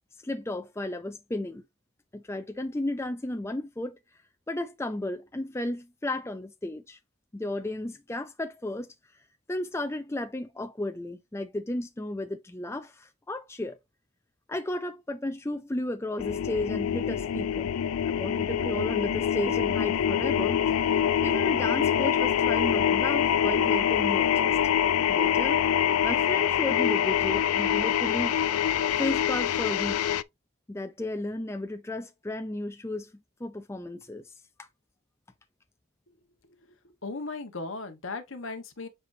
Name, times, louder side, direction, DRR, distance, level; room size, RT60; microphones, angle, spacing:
voice 1, 0.2-1.6 2.1-4.0 4.5-7.0 7.3-8.9 9.5-13.8 14.5-17.7 18.0-24.6 25.1-28.4 29.0-30.1 30.7-33.1 33.4-34.3, left 1 dB, 10° left, 0.5 m, -34 dB
sound 1, 16.2-30.2, left 9 dB, 90° left, 0.4 m, -25 dB
voice 2, 37.0-38.9, left 3 dB, 65° left, 1.3 m, -36 dB
8.1 x 4.8 x 2.7 m
head